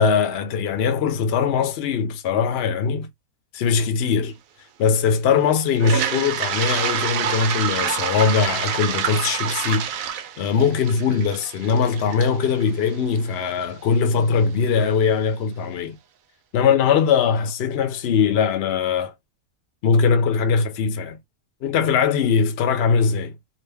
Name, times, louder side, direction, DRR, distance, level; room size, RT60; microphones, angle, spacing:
voice 1, 0.0-3.1 3.5-4.4 4.8-16.0 16.5-19.1 19.8-21.2 21.6-23.3, left 6 dB, 60° left, 0.8 m, -21 dB
Toilet flush, 5.7-13.6, right 8 dB, 80° right, 1.0 m, -27 dB
2.8 x 2.6 x 3.4 m
omnidirectional pair, 1.4 m